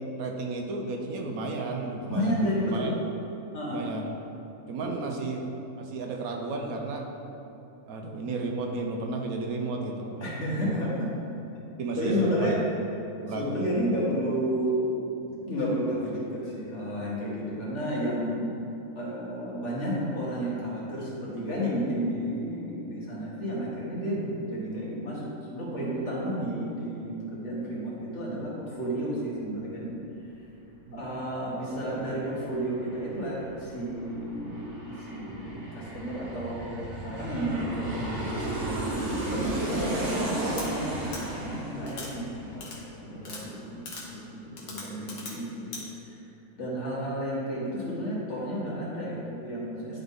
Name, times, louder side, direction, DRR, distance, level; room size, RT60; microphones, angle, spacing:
voice 1, 0.2-2.9 3.7-4.1 4.7-5.4 5.8-7.1 7.9-10.3 11.8-12.6 13.2-13.6 30.9-31.0, right 3 dB, 75° right, 2 dB, 1.2 m, -33 dB
voice 2, 2.1-2.9 3.5-3.8 4.8-5.2 10.2-11.1 12.0-12.6 13.3-14.9 15.5-18.5 19.0-29.9 30.9-42.6 42.9-45.8 46.1-46.2 46.6-50.0, equal, 55° left, -7 dB, 1.8 m, -32 dB
Aircraft, 31.6-31.7 32.0-43.3 43.6-43.7, right 2 dB, 55° right, 1.3 m, -34 dB
sound 1, 40.6-40.7 41.1-41.2 41.9-42.1 42.6-42.8 43.2-43.4 43.9-44.0 44.6-45.3 45.7-45.8, left 3 dB, 75° left, 1.5 m, -39 dB
10.5 x 3.9 x 3.7 m, 2.9 s
omnidirectional pair, 1.5 m